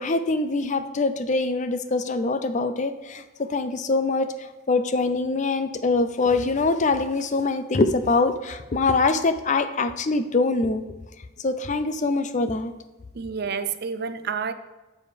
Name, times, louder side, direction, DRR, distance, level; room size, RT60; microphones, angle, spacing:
voice 1, 0.0-4.3 4.7-10.9 11.4-12.7, left 3 dB, 35° left, 0.5 m, -24 dB
voice 2, 13.1-14.5, right 6 dB, 50° right, 0.5 m, -29 dB
9.5 x 7.0 x 3.4 m
head